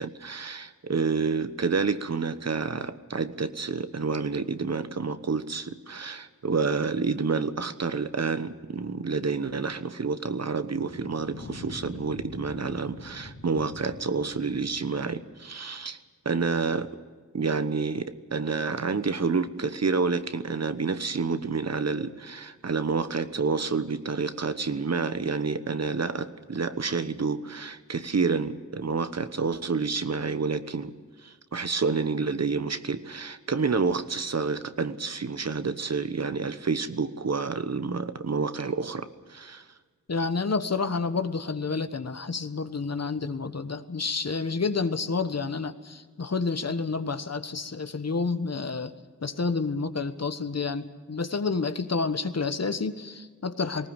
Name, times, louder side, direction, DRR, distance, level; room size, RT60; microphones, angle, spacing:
voice 1, 0.0-16.0 16.2-17.0 17.3-30.9 31.2-39.6, right 4 dB, 60° right, 11 dB, 1.1 m, -29 dB
sound 1, 10.5-15.4, left 2 dB, 80° left, 3.6 m, -45 dB
voice 2, 40.1-48.9 49.2-53.9, left 4 dB, 60° left, 10 dB, 1.3 m, -29 dB
19.5 x 19.0 x 9.0 m, 1.5 s
wide cardioid pair, 85°, 30 cm